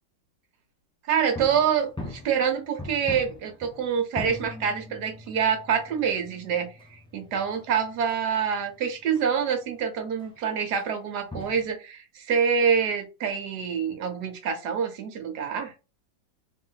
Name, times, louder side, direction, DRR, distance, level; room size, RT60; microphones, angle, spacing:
voice 1, 1.1-15.7, right 7 dB, 70° right, 6 dB, 1.4 m, -26 dB
sound 1, 1.2-9.3 9.6-9.7 10.2-10.4 10.8-11.0 11.2-11.7, left 2 dB, 5° left, 0.5 m, -42 dB
3.4 x 3.2 x 3.9 m, 0.30 s
omnidirectional pair, 1.9 m